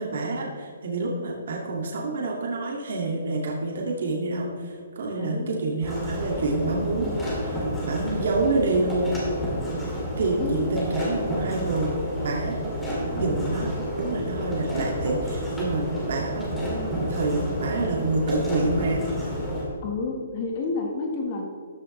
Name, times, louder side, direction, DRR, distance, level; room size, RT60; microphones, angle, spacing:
voice 1, 0.0-7.1 7.4-9.1 10.2-11.9 12.2-12.6 13.2-13.7 14.0-19.0, right 3 dB, 55° right, -1 dB, 2.1 m, -27 dB
voice 2, 5.2-5.5 10.4-10.8 19.8-21.4, left 3 dB, 25° left, 1 dB, 1.3 m, -29 dB
sound 1, 5.8-19.6, equal, 5° left, 2.3 m, -30 dB
13.5 x 11.0 x 3.2 m, 2.2 s
hypercardioid pair, 175°, 0 cm